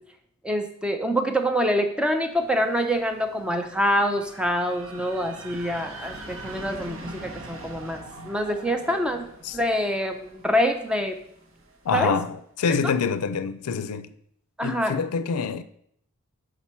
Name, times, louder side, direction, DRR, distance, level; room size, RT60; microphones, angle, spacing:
voice 1, 0.4-9.3 9.5-11.2 11.9-12.1 12.8-12.9 14.6-15.0, equal, 5° right, 0.5 m, -25 dB
sound 1, 2.2-12.0, right 2 dB, 60° right, 1.0 m, -43 dB
voice 2, 11.8-14.1 14.6-15.6, left 5 dB, 90° left, 0.4 m, -26 dB
5.8 x 5.0 x 4.4 m
head